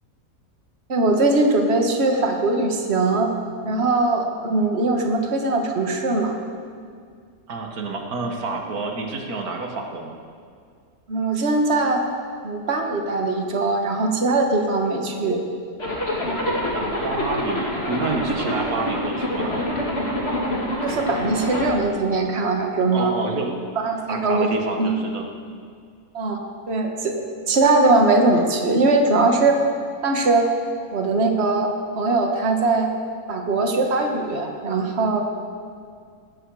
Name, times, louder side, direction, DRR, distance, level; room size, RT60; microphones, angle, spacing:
voice 1, 0.9-3.3 3.7-6.3 11.1-12.0 12.4-15.4 20.8-23.1 23.8-24.5 24.8-24.9 26.1-26.4 26.7-27.1 27.5-29.6 30.0-30.5 30.9-32.9 33.3-35.2, right 3 dB, 45° right, 2 dB, 1.7 m, -21 dB
voice 2, 7.5-10.2 16.7-19.7 22.9-23.6 24.1-25.3, right 3 dB, 85° right, 2 dB, 2.0 m, -29 dB
Zipper (clothing), 15.8-21.7, equal, 45° left, 3.2 m, -26 dB
19.0 x 13.5 x 4.8 m, 2.1 s
omnidirectional pair, 1.5 m